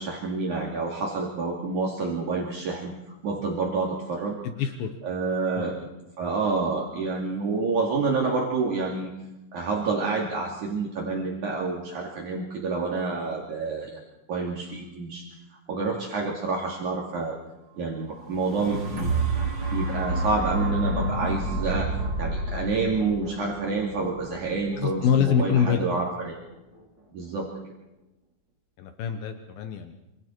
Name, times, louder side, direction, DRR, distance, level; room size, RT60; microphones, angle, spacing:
voice 1, 0.0-2.9 3.2-4.4 5.0-5.8 6.2-9.1 9.5-14.0 14.3-15.3 15.7-17.4 17.8-19.1 19.7-21.9 22.2-26.4 27.1-27.5, right 3 dB, 55° right, -2 dB, 3.9 m, -28 dB
voice 2, 4.4-4.9 5.5-5.9 24.8-26.0 28.8-29.9, left 7 dB, 75° left, 6 dB, 2.9 m, -25 dB
sound 1, 18.2-26.2 26.8-26.9, right 2 dB, 30° right, 5.1 m, -30 dB
27.0 x 27.0 x 4.6 m, 0.94 s
omnidirectional pair, 4.2 m